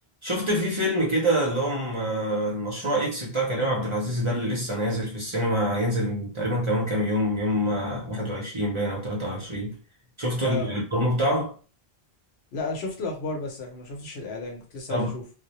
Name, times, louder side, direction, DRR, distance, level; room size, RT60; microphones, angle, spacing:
voice 1, 0.2-9.8 10.2-11.5 14.9-15.1, equal, 35° right, 0.6 m, -26 dB
voice 2, 10.4-10.7 12.5-15.2, left 3 dB, 75° left, 0.9 m, -33 dB
2.1 x 2.0 x 2.8 m
omnidirectional pair, 1.1 m